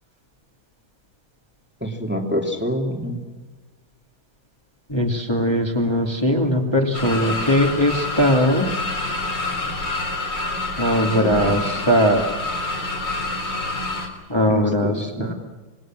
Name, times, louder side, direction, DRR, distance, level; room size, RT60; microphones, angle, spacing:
voice 1, 1.8-3.2 11.0-11.5 14.5-15.3, equal, 5° right, 2 dB, 2.8 m, -27 dB
voice 2, 4.9-8.7 10.8-12.2 14.3-15.3, equal, 10° left, 0 dB, 2.6 m, -20 dB
sound 1, 6.9-14.1, left 2 dB, 55° left, 4.3 m, -27 dB
28.0 x 21.0 x 7.6 m, 1.3 s
omnidirectional pair, 2.3 m